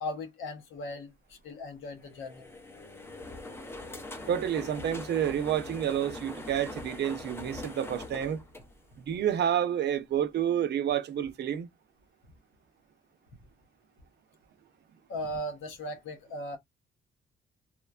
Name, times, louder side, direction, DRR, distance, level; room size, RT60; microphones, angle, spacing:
voice 1, 0.0-2.5 15.1-16.6, left 1 dB, 85° left, 0.9 m, -38 dB
sound 1, 2.0-9.3, left 2 dB, 10° left, 0.6 m, -43 dB
voice 2, 4.3-8.4 9.0-11.7, right 9 dB, 60° right, 0.5 m, -29 dB
3.0 x 2.1 x 2.3 m
cardioid pair, 90°, 20 cm